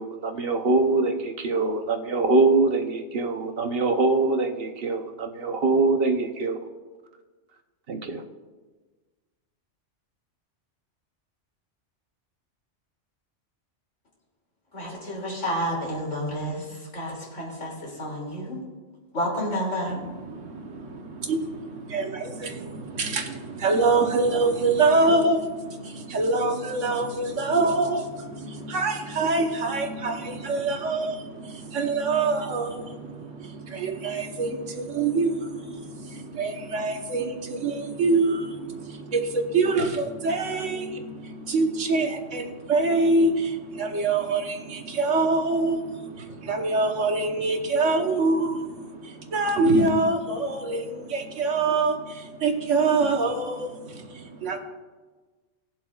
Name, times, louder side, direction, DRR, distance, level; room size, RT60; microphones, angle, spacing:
voice 1, 0.0-6.6 7.9-8.2, right 3 dB, 55° right, 5 dB, 1.0 m, -23 dB
voice 2, 14.7-18.6 19.1-20.0, equal, 80° left, -3 dB, 3.1 m, -30 dB
voice 3, 19.9-54.6, right 3 dB, 85° right, 4 dB, 1.4 m, -25 dB
19.0 x 7.5 x 2.3 m, 1.3 s
omnidirectional pair, 1.2 m